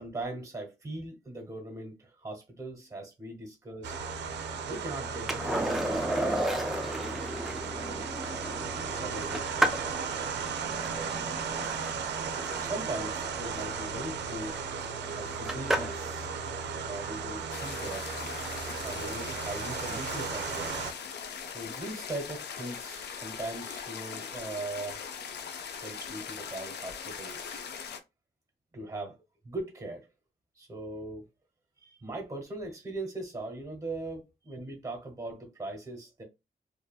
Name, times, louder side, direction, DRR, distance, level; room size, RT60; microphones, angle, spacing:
voice 1, 0.0-3.9 4.7-6.6 7.3-8.1 8.6-9.9 10.6-11.5 12.6-14.6 15.2-16.3 16.9-18.1 18.8-20.8 21.5-25.0 25.8-27.6 28.7-29.2 29.4-30.1 30.5-31.2 31.8-36.2, right 2 dB, 20° right, 1.0 m, -40 dB
sound 1, 3.8-20.9, right 5 dB, 85° right, 0.4 m, -35 dB
Skateboard, 5.3-16.1 18.7-18.8, right 1 dB, ahead, 0.4 m, -34 dB
sound 2, 17.5-28.0, left 7 dB, 75° left, 0.4 m, -40 dB
2.6 x 2.6 x 2.3 m
wide cardioid pair, 160°, 17 cm